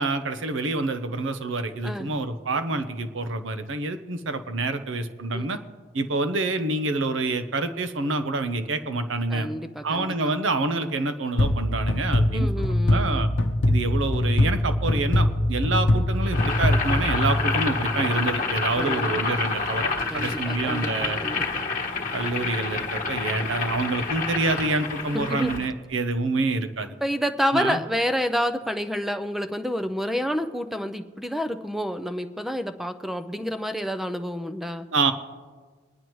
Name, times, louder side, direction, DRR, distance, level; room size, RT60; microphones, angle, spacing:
voice 1, 0.0-5.6 5.9-9.5 9.8-12.6 12.9-13.3 13.7-21.2 22.1-27.0 27.5-27.8 34.9-35.1, right 3 dB, 80° right, 10 dB, 0.8 m, -27 dB
voice 2, 1.8-2.2 5.3-5.5 9.3-10.3 12.3-13.3 18.7-19.2 20.1-21.4 25.1-25.7 27.0-34.9, equal, ahead, 9 dB, 0.5 m, -29 dB
sound 1, 11.4-18.0, left 1 dB, 70° left, 0.8 m, -23 dB
Boiling, 16.2-25.7, left 4 dB, 45° left, 1.2 m, -28 dB
22.0 x 10.5 x 3.1 m, 1.4 s
head